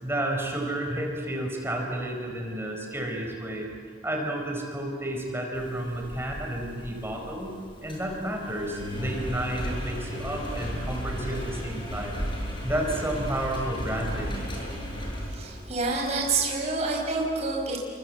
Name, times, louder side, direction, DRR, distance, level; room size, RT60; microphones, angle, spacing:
voice 1, 0.0-3.7 4.0-12.3 12.6-14.5, right 1 dB, 15° right, 1 dB, 4.8 m, -31 dB
Engine, 5.5-16.4, equal, 25° left, 7.8 m, -35 dB
voice 2, 15.3-17.8, right 3 dB, 40° right, -1 dB, 5.3 m, -28 dB
29.5 x 24.5 x 8.0 m, 2.2 s
head